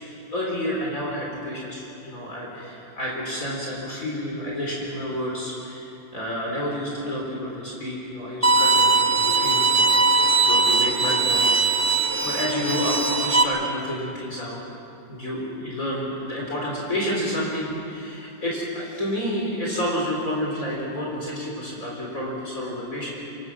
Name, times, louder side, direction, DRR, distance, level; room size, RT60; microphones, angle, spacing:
voice 1, 0.3-11.5 12.2-14.6 15.1-23.2, equal, 45° left, -4 dB, 4.5 m, -30 dB
Bowed string instrument, 8.4-13.4, right 3 dB, 10° right, 0.8 m, -20 dB
28.0 x 22.5 x 6.2 m, 2.8 s
omnidirectional pair, 1.9 m